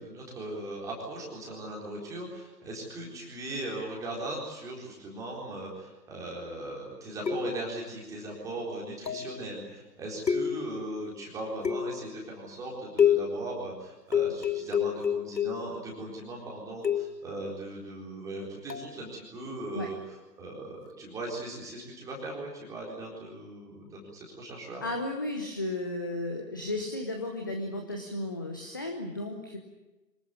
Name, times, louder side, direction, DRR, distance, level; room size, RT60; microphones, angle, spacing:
voice 1, 0.0-20.0 20.4-24.8, right 1 dB, 5° right, -2 dB, 4.1 m, -39 dB
sound 1, 7.3-7.8 9.1-9.4 10.3-10.9 11.6-12.1 13.0-13.5 14.1-15.8 16.8-17.3 18.7-18.9, left 8 dB, 80° left, 1.6 m, -28 dB
voice 2, 24.8-29.6, left 2 dB, 15° left, 3 dB, 0.8 m, -34 dB
25.0 x 18.5 x 9.5 m, 1.1 s
figure-of-eight pair, 145°, 49 cm